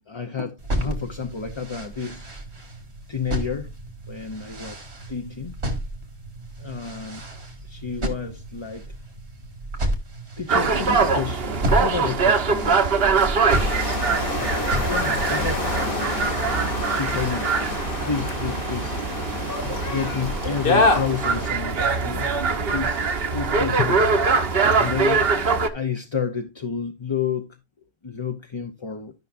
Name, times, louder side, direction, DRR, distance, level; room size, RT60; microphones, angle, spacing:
voice 1, 0.0-2.3 3.1-3.7 4.1-5.5 6.6-7.2 7.6-8.9 10.4-14.0 14.3-15.7 16.9-17.6 18.0-19.0 19.6-22.3 22.7-23.0 23.3-24.1 24.7-25.3 25.7-27.6 28.0-29.1, left 6 dB, 30° left, 0.7 m, -30 dB
sound 1, 0.6-16.8, right 1 dB, 85° right, 2.3 m, -32 dB
sound 2, 10.5-25.7, right 4 dB, 65° right, 1.2 m, -23 dB
sound 3, 13.5-21.5, left 3 dB, 55° left, 1.7 m, -27 dB
13.5 x 5.8 x 2.5 m
omnidirectional pair, 1.1 m